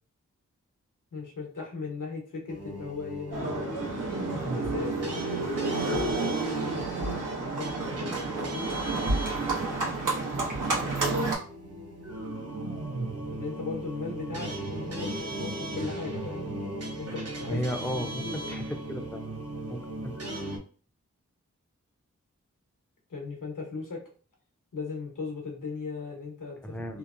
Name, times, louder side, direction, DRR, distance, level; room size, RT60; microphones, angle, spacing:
voice 1, 1.1-3.7 4.5-8.7 13.3-16.4 17.0-17.6 17.9-18.3 23.1-24.0 24.7-27.0, left 4 dB, 85° left, -1 dB, 0.9 m, -37 dB
sound 1, 2.5-20.6, right 2 dB, 55° right, 0.6 m, -37 dB
Livestock farm animals working animals, 3.3-11.3, right 3 dB, 80° right, 0.9 m, -30 dB
voice 2, 17.5-19.2 19.7-20.2 26.6-27.0, equal, 5° left, 4 dB, 0.5 m, -34 dB
2.9 x 2.0 x 2.4 m, 0.40 s
cardioid pair, 45°, 31 cm